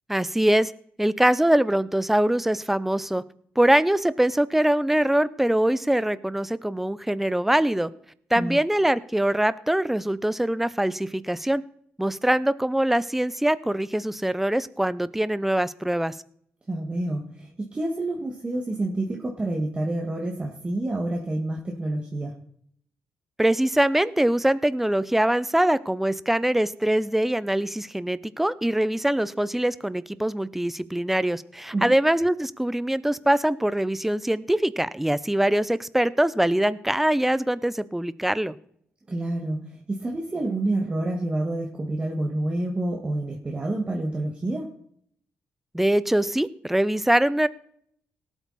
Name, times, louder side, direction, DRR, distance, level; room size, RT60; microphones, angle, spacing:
voice 1, 0.1-0.7 1.0-3.2 3.6-7.9 8.3-11.6 12.0-16.1 23.4-38.6 45.7-47.5, right 1 dB, 5° right, 17 dB, 0.5 m, -23 dB
voice 2, 16.7-22.3 31.7-31.9 39.1-44.7, right 2 dB, 25° right, 0 dB, 1.8 m, -28 dB
18.0 x 8.2 x 4.2 m, 0.65 s
cardioid pair, 105°, 4 cm